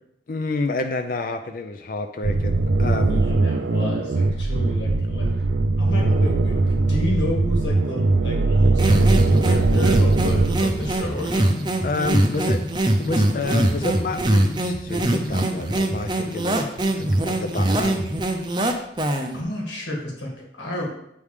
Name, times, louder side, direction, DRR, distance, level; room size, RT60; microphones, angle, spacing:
voice 1, 0.3-3.2 11.8-12.6 13.0-16.7 17.0-18.0, left 3 dB, 50° left, 6 dB, 0.4 m, -29 dB
sound 1, 2.2-11.1, right 2 dB, 80° right, 0.5 m, -20 dB
voice 2, 3.1-5.3 5.8-11.6 19.3-20.9, left 1 dB, 90° left, -1 dB, 1.9 m, -31 dB
sound 2, 8.8-19.4, right 1 dB, 25° right, 0.6 m, -22 dB
8.3 x 3.6 x 4.8 m, 0.78 s
head